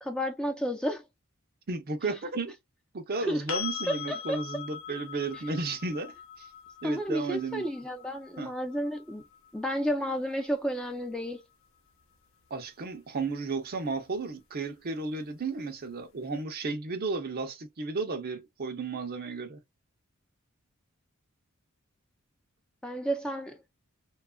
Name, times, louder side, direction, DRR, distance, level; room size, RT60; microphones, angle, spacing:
voice 1, 0.0-1.0 3.2-3.4 3.9-4.4 6.8-9.2 9.5-11.4 22.8-23.6, equal, 5° left, 0.4 m, -31 dB
voice 2, 1.7-2.5 2.9-6.5 6.8-7.6 8.4-8.5 12.5-19.6, right 3 dB, 45° right, 0.6 m, -33 dB
sound 1, 3.5-11.3 14.1-14.2, left 8 dB, 70° left, 0.7 m, -42 dB
2.9 x 2.4 x 2.2 m
head